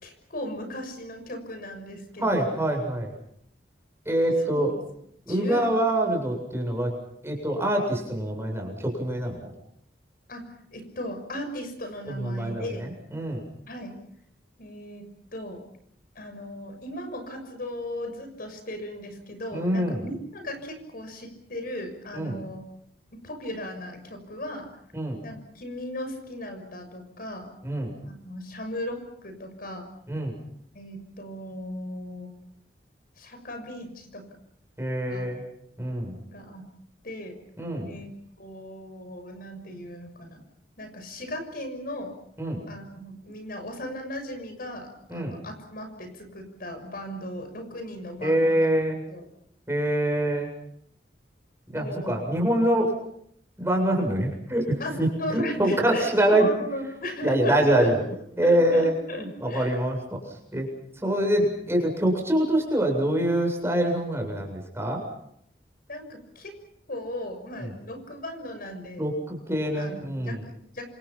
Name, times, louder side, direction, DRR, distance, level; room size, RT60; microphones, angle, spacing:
voice 1, 0.0-2.5 4.5-4.6 5.3-5.7 10.3-10.4 10.7-12.8 13.7-14.0 14.6-15.1 15.3-15.6 16.1-22.6 23.1-24.7 25.2-27.5 28.0-29.8 30.7-32.3 33.2-34.2 35.1-35.3 36.2-36.7 37.0-37.3 37.8-38.1 38.4-40.4 40.8-42.1 42.7-48.7 49.1-49.3 51.7-52.2 54.8-58.0 58.4-59.8 65.9-66.5 66.9-69.0 69.7-70.8, left 1 dB, 55° left, 7 dB, 6.4 m, -37 dB
voice 2, 2.2-3.1 4.1-4.7 5.3-6.9 7.2-9.5 12.1-13.4 19.5-20.0 22.1-22.4 24.9-25.2 27.6-27.9 30.1-30.3 34.8-35.4 35.8-36.2 37.6-37.9 42.4-42.6 45.1-45.3 48.2-49.0 49.7-50.5 51.7-52.9 53.6-56.5 57.2-58.0 58.4-60.2 60.5-60.7 61.0-65.0 67.6-67.7 69.0-70.4, right 1 dB, 15° right, 2 dB, 7.6 m, -25 dB
28.0 x 27.0 x 5.9 m, 0.71 s
head